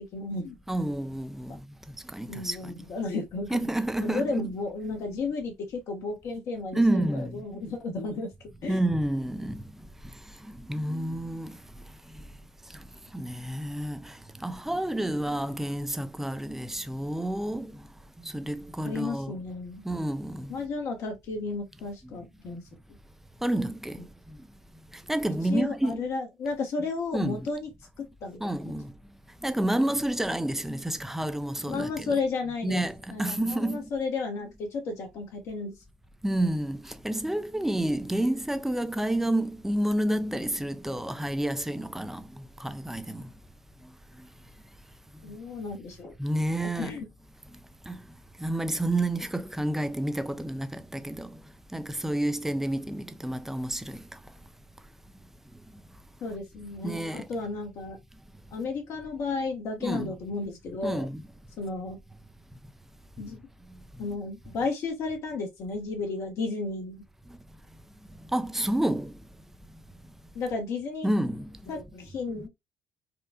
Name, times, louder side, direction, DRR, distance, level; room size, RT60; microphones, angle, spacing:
voice 1, 0.0-0.6 1.5-1.6 2.3-3.7 4.0-8.3 8.6-8.8 18.8-19.8 20.5-22.6 25.5-27.7 28.0-28.5 31.7-32.8 33.1-35.7 45.2-46.1 46.6-47.1 56.2-58.0 58.5-61.1 61.6-62.0 63.2-63.4 64.0-67.0 70.3-71.1 71.7-72.5, left 3 dB, 60° left, 1.2 m, -33 dB
voice 2, 0.7-2.9 3.5-4.5 6.7-7.4 8.7-9.6 10.0-11.6 12.1-12.2 12.7-12.9 13.1-17.9 18.2-19.4 19.8-20.6 22.0-22.1 23.4-24.4 24.9-26.1 26.8-26.9 27.1-27.5 28.4-28.9 29.4-32.2 32.6-33.9 36.2-43.3 43.8-43.9 44.2-44.3 46.2-47.0 47.9-48.0 48.4-51.4 51.7-54.2 56.8-57.3 59.8-60.1 60.8-61.3 63.7-64.2 67.3-67.4 68.2-69.2 71.0-71.6, right 1 dB, 5° right, 0.5 m, -30 dB
4.2 x 2.4 x 2.3 m
hypercardioid pair, 60°, 5 cm